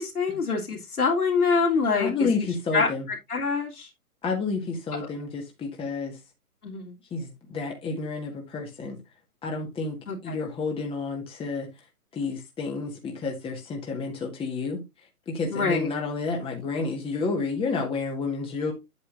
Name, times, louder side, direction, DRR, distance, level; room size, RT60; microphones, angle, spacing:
voice 1, 0.0-2.3 2.7-2.9 3.3-3.9 4.9-5.1 6.6-6.9 10.1-10.4 15.5-15.9, left 4 dB, 85° left, 3.1 m, -25 dB
voice 2, 2.0-3.0 4.2-6.2 7.1-9.0 9.4-11.7 12.1-14.8 15.3-18.7, left 4 dB, 10° left, 1.7 m, -30 dB
9.7 x 8.5 x 2.6 m
hypercardioid pair, 130°, 44 cm